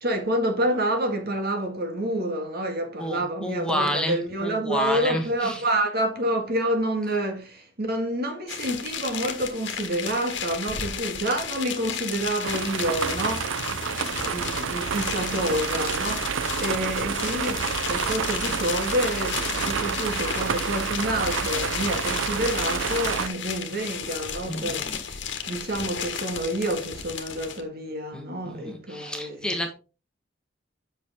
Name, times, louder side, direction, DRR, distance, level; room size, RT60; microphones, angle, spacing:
voice 1, 0.0-25.2 25.5-29.6, right 1 dB, 50° right, 1.9 m, -28 dB
voice 2, 3.0-5.6 24.5-25.0 25.3-25.5 28.1-29.7, equal, 5° left, 1.4 m, -30 dB
sound 1, 8.5-27.6, left 8 dB, 65° left, 1.4 m, -33 dB
sound 2, 12.4-23.3, right 6 dB, 75° right, 0.6 m, -29 dB
8.3 x 6.3 x 3.6 m
head